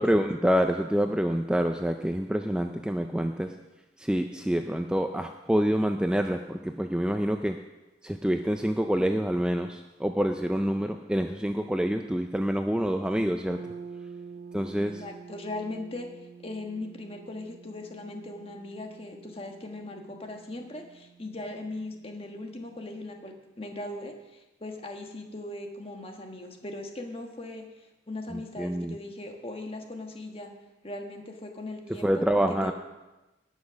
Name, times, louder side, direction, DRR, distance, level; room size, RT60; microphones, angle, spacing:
voice 1, 0.0-3.5 4.0-7.6 8.0-13.6 14.5-15.0 28.3-28.9 32.0-32.7, equal, 5° right, 5 dB, 0.4 m, -27 dB
sound 1, 13.5-23.2, right 5 dB, 60° right, 2.0 m, -48 dB
voice 2, 14.8-16.1 16.4-30.5 30.8-32.7, left 2 dB, 30° left, 3 dB, 1.4 m, -39 dB
18.5 x 6.3 x 6.2 m, 1.1 s
head